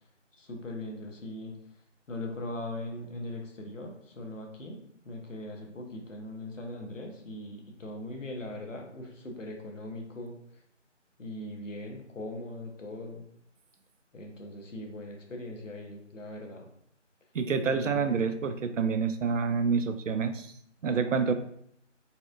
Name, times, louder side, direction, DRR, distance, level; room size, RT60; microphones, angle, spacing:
voice 1, 0.4-1.6 2.1-4.8 5.0-10.3 11.2-13.3 14.1-16.7 17.7-18.1 18.4-18.5, left 1 dB, 80° left, 2 dB, 1.0 m, -40 dB
voice 2, 17.3-20.5 20.8-21.3, right 5 dB, 85° right, 9 dB, 0.5 m, -27 dB
4.0 x 2.4 x 2.4 m, 0.68 s
figure-of-eight pair, 165°, 37 cm